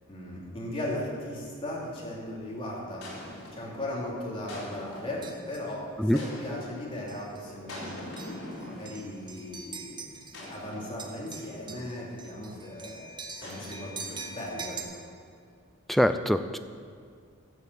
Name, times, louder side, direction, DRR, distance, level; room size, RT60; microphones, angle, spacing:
voice 1, 0.1-3.1 3.5-7.9 8.6-10.1 10.5-13.1 13.4-14.8, left 1 dB, 25° left, -5 dB, 3.0 m, -37 dB
sound 1, 1.7-2.1 3.0-3.8 4.5-5.3 6.1-6.9 7.7-9.3 10.3-11.6 13.4-14.6, left 1 dB, 70° left, 3.9 m, -44 dB
sound 2, 5.2-5.7 6.2-6.4 7.1-7.4 7.8-10.6 10.9-14.8, right 4 dB, 20° right, 1.0 m, -43 dB
voice 2, 15.9-16.6, equal, ahead, 9 dB, 0.4 m, -23 dB
12.5 x 7.2 x 8.1 m, 2.1 s
head